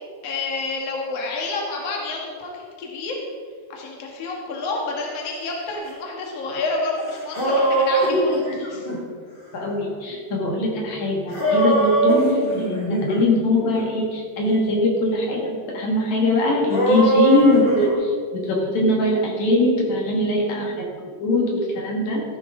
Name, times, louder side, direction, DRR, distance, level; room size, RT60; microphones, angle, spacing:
voice 1, 0.2-3.2 3.7-8.9 12.1-12.4, left 3 dB, 70° left, -1 dB, 1.4 m, -29 dB
sound 1, 6.9-7.0 7.1-9.0 11.3-13.2 13.6-13.8 16.7-17.9, right 2 dB, 20° left, 1.4 m, -20 dB
voice 2, 9.5-20.8 21.2-22.2, left 2 dB, 50° left, -2 dB, 2.6 m, -22 dB
14.5 x 12.0 x 3.8 m, 2.1 s
omnidirectional pair, 5.6 m